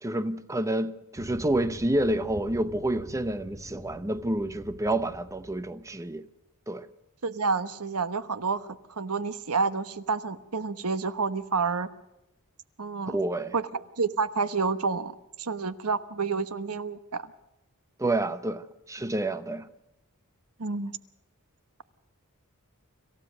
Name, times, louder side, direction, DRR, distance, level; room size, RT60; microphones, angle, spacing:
voice 1, 0.0-6.3 6.7-6.9 13.1-13.5 18.0-19.7, right 1 dB, 15° right, 0.8 m, -29 dB
sound 1, 1.2-6.1, right 1 dB, 45° right, 2.3 m, -46 dB
voice 2, 7.2-8.7 9.0-11.9 12.8-13.2 13.5-17.2 20.6-20.9, right 4 dB, 80° right, 1.2 m, -29 dB
26.5 x 15.5 x 6.4 m
head